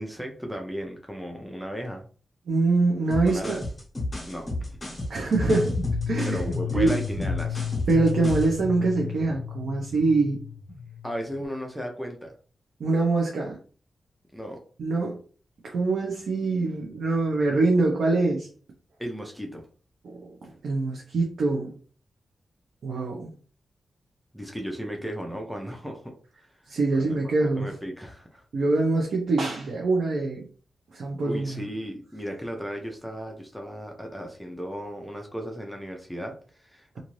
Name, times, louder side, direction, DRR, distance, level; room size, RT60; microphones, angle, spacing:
voice 1, 0.0-2.0 3.3-3.6 4.3-4.8 6.3-7.6 11.0-12.3 14.3-14.6 19.0-19.7 24.3-26.1 26.6-26.7 27.0-27.2 27.6-28.4 31.2-37.0, equal, ahead, 2 dB, 0.5 m, -35 dB
voice 2, 2.5-3.6 5.1-5.8 6.1-6.4 6.7-7.0 7.9-10.4 12.8-13.6 14.8-15.2 15.6-18.5 20.0-21.7 22.8-23.3 26.7-27.7 28.5-30.5 30.9-31.6, right 3 dB, 70° right, 0 dB, 0.6 m, -24 dB
sound 1, 3.1-8.6, left 1 dB, 25° left, 1.0 m, -32 dB
sound 2, 5.5-11.5, left 6 dB, 55° left, 0.6 m, -32 dB
2.6 x 2.5 x 3.0 m, 0.41 s
wide cardioid pair, 130°, 0 cm